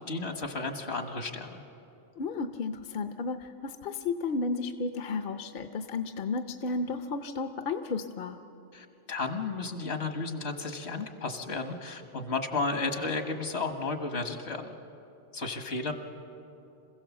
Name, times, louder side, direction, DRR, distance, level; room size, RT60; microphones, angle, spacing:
voice 1, 0.0-1.6 8.7-14.8 15.3-15.9, left 3 dB, 75° left, 6 dB, 1.7 m, -33 dB
voice 2, 2.2-8.4, left 4 dB, 55° left, 8 dB, 0.9 m, -33 dB
27.0 x 16.0 x 7.2 m, 2.8 s
omnidirectional pair, 1.1 m